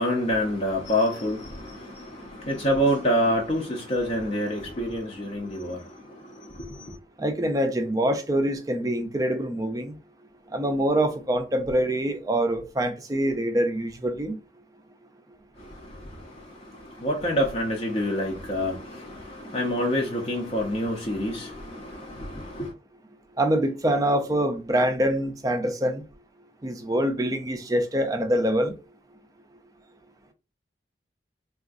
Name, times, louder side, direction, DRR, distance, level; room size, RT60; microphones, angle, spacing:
voice 1, 0.0-7.0 15.6-22.7, equal, 35° left, 0.5 m, -27 dB
voice 2, 7.2-10.0 10.5-14.4 23.4-26.0 26.6-28.7, right 1 dB, 20° right, 0.4 m, -25 dB
3.6 x 2.3 x 2.5 m
head